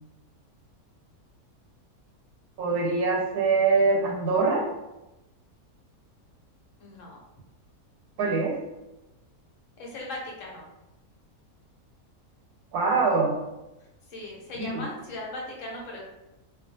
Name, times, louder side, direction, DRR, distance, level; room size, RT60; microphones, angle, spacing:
voice 1, 2.6-4.7 8.2-8.6 12.7-13.4 14.6-14.8, right 4 dB, 90° right, 1 dB, 1.1 m, -23 dB
voice 2, 6.8-7.2 9.8-10.6 14.1-16.0, left 1 dB, 65° left, -2 dB, 1.0 m, -38 dB
2.4 x 2.3 x 2.7 m, 0.98 s
omnidirectional pair, 1.6 m